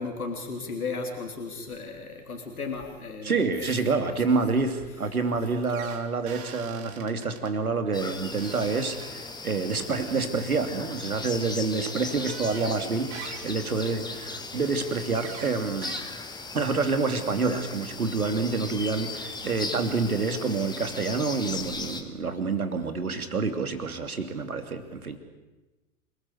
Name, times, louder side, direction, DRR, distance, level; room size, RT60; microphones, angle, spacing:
voice 1, 0.0-3.5 4.0-4.1, left 4 dB, 75° left, 3 dB, 3.4 m, -35 dB
voice 2, 3.2-15.9 16.5-25.2, right 4 dB, 75° right, 7 dB, 2.9 m, -28 dB
sound 1, 5.6-7.5 8.4-9.0 9.8-10.2 11.0-11.2 12.1-12.8 13.1-13.6 15.1-15.6 15.8-16.0, right 8 dB, 45° right, 3.3 m, -43 dB
sound 2, 7.9-22.0, left 3 dB, 10° left, 2.2 m, -38 dB
28.0 x 20.5 x 8.1 m, 1.1 s
figure-of-eight pair, 95°, 44 cm